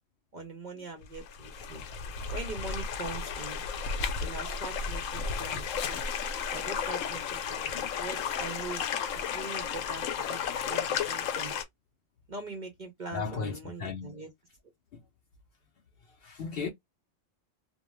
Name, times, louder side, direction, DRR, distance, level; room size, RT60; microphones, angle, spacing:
voice 1, 0.3-1.8 2.3-3.6 4.2-6.0 6.5-8.8 9.1-11.6 12.3-14.3, right 3 dB, 50° right, 0.6 m, -42 dB
sound 1, 1.0-11.6, left 7 dB, 80° left, 1.0 m, -33 dB
voice 2, 13.0-14.2 14.9-15.0 16.2-16.7, left 5 dB, 60° left, 0.6 m, -36 dB
2.4 x 2.1 x 3.0 m
omnidirectional pair, 1.3 m